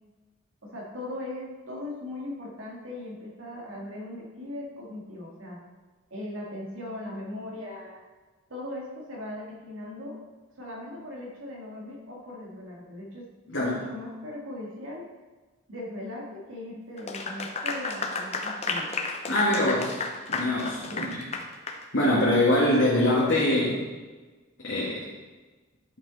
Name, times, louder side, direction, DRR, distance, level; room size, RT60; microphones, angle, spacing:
voice 1, 0.6-5.6 6.1-8.0 8.5-10.2 10.6-13.3 13.6-15.1 15.7-18.9 20.9-21.1, left 1 dB, 80° right, -2 dB, 2.1 m, -38 dB
Clapping / Applause, 17.0-21.8, left 4 dB, 30° left, 0.7 m, -32 dB
voice 2, 19.3-20.0 20.3-21.2 21.9-23.8 24.6-25.1, left 1 dB, 70° left, -7 dB, 1.8 m, -23 dB
10.5 x 6.1 x 4.1 m, 1.3 s
head